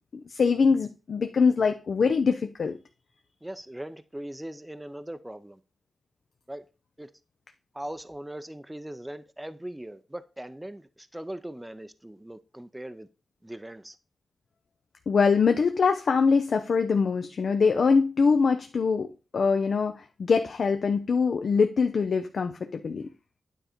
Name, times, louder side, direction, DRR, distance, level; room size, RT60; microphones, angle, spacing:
voice 1, 0.3-2.8 15.1-19.1 19.3-23.1, left 5 dB, 65° left, 0.5 m, -23 dB
voice 2, 3.4-5.6 6.5-6.6 7.0-7.1 7.7-13.1 13.4-14.0, right 1 dB, 10° right, 0.5 m, -40 dB
9.2 x 3.8 x 4.3 m
cardioid pair, 75°, 0 cm